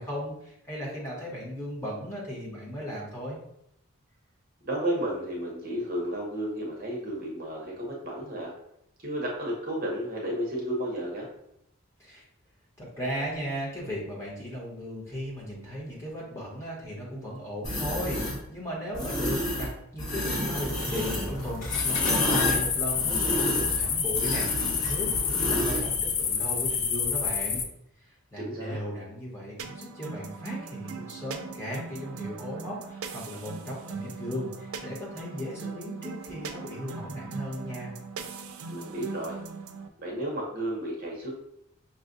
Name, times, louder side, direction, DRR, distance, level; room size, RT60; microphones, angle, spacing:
voice 1, 0.0-3.4 12.0-12.2 12.8-18.2 18.5-27.6 28.0-37.9, equal, 15° left, -6 dB, 1.2 m, -36 dB
voice 2, 4.6-8.5 9.0-11.3 28.4-28.8 38.7-39.4 40.0-41.4, right 1 dB, 45° right, -2 dB, 0.8 m, -32 dB
sound 1, 17.6-18.4 18.9-19.7 20.0-25.9, equal, 40° left, 1.4 m, -30 dB
sound 2, 21.7-27.6, left 6 dB, 70° left, 0.5 m, -28 dB
sound 3, 29.6-39.9, right 4 dB, 80° right, 0.4 m, -40 dB
5.7 x 2.4 x 2.6 m, 0.76 s
head